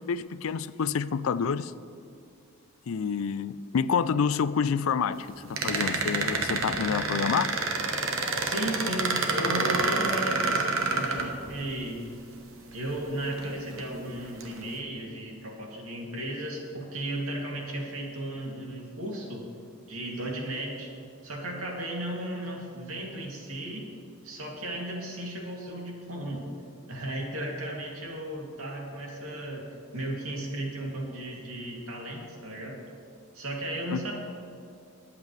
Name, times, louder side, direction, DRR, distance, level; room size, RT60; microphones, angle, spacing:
voice 1, 0.0-1.7 2.9-7.6 33.9-34.0, left 6 dB, 70° left, 16 dB, 0.4 m, -28 dB
sound 1, 5.6-11.8 12.7-12.8 13.3-13.8 14.4-14.6, right 3 dB, 65° right, 1.1 m, -28 dB
voice 2, 8.4-12.0 12.7-19.4 19.9-20.9 21.2-23.8 24.2-26.4 26.9-29.6 29.9-32.8 33.3-34.1, right 1 dB, 80° right, -2 dB, 2.6 m, -35 dB
21.0 x 8.4 x 3.3 m, 2.4 s
head